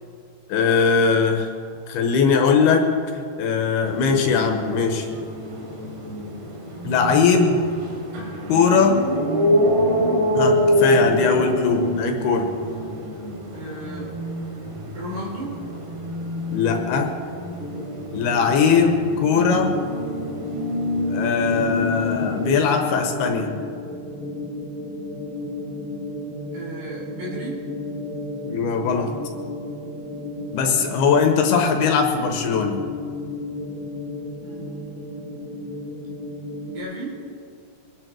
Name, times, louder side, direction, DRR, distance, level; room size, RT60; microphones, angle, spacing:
voice 1, 0.5-1.5 1.9-2.9 3.1-5.1 6.8-7.6 8.5-9.1 10.3-12.5 16.5-17.1 18.1-19.8 21.1-23.5 28.4-29.1 30.5-32.8, left 5 dB, 75° left, 3 dB, 3.1 m, -20 dB
sound 1, 3.8-22.5, equal, 85° right, 5.0 m, -26 dB
voice 2, 13.5-14.1 14.9-15.6 26.5-27.7 34.4-35.3 36.7-37.3, right 1 dB, 65° right, -5 dB, 6.0 m, -35 dB
sound 2, 17.6-36.8, left 1 dB, 45° left, 1.0 m, -33 dB
24.0 x 10.5 x 4.7 m, 2.3 s
omnidirectional pair, 4.8 m